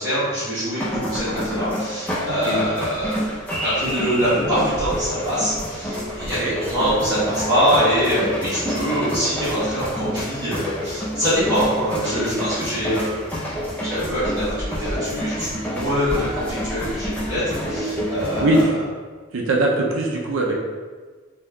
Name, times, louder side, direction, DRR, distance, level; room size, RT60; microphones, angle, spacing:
voice 1, 0.0-3.2 3.6-13.4 13.8-17.4 17.7-18.8, equal, 20° right, -14 dB, 1.5 m, -24 dB
sound 1, 0.8-18.6, equal, 5° left, 0.5 m, -28 dB
voice 2, 2.3-2.6 6.2-6.6 18.4-18.7 19.3-20.5, right 2 dB, 75° right, -2 dB, 0.4 m, -21 dB
3.6 x 2.6 x 2.2 m, 1.4 s
head